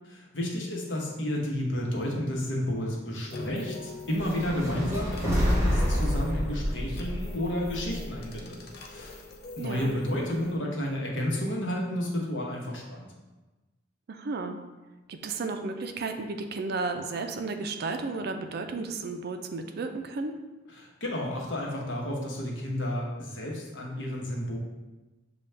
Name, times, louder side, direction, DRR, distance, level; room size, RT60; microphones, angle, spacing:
voice 1, 0.3-9.2 9.6-13.1 20.7-24.6, left 1 dB, 75° left, -2 dB, 1.0 m, -31 dB
Skyrunner-The Timelab, 3.3-10.6, left 2 dB, 55° left, 0.6 m, -43 dB
sound 1, 4.1-8.4, equal, 15° right, 0.9 m, -28 dB
voice 2, 9.6-10.3 14.1-14.6 15.1-20.4, right 3 dB, 60° right, 6 dB, 0.4 m, -33 dB
6.7 x 2.3 x 3.3 m, 1.1 s
head